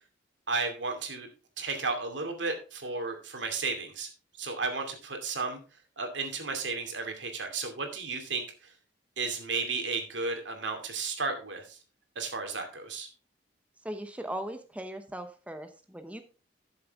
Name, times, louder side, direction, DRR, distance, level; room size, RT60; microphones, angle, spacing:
voice 1, 0.5-1.3 1.6-4.1 4.4-5.6 6.0-8.4 9.2-11.8 12.2-13.1, right 4 dB, 80° right, 4 dB, 2.5 m, -33 dB
voice 2, 13.8-16.2, right 1 dB, 10° right, 7 dB, 0.8 m, -39 dB
12.0 x 7.0 x 3.6 m, 0.34 s
head